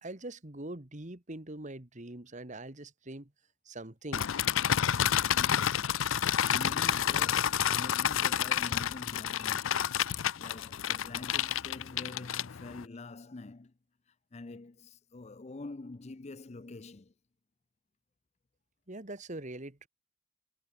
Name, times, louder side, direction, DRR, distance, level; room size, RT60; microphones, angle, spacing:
voice 1, 0.0-3.3 3.7-4.4 18.9-19.9, right 2 dB, 40° right, 1.9 m, -43 dB
sound 1, 4.1-12.8, left 9 dB, 85° left, 0.6 m, -29 dB
voice 2, 5.4-9.9 10.4-13.7 14.3-17.1, left 2 dB, 35° left, 0.5 m, -46 dB
head